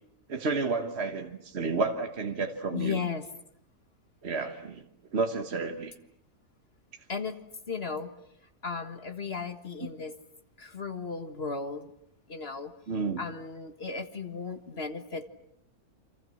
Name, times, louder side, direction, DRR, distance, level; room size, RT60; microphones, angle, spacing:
voice 1, 0.3-3.0 4.2-4.8 5.1-5.9 12.9-13.2, right 4 dB, 45° right, 5 dB, 1.5 m, -31 dB
voice 2, 2.7-3.2 7.1-7.4 7.7-8.1 8.6-10.1 10.6-11.9 12.3-12.7 13.2-15.3, left 5 dB, 40° left, 8 dB, 1.8 m, -35 dB
28.5 x 26.5 x 7.7 m, 0.76 s
omnidirectional pair, 1.6 m